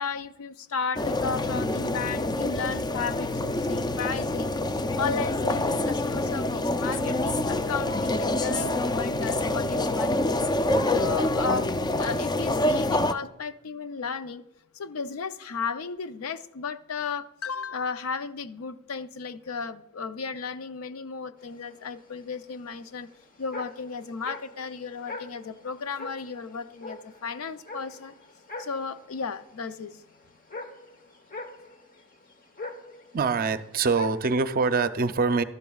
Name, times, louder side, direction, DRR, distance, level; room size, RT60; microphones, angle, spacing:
voice 1, 0.0-10.4 10.9-14.4 14.7-23.1 23.4-28.1 28.6-30.0, left 5 dB, 75° left, 0.5 m, -34 dB
sound 1, 1.0-13.1, left 1 dB, 20° left, 0.4 m, -26 dB
sound 2, 21.4-34.3, left 2 dB, 40° left, 1.0 m, -44 dB
voice 2, 33.1-35.4, right 4 dB, 45° right, 0.5 m, -24 dB
12.5 x 12.0 x 2.3 m
head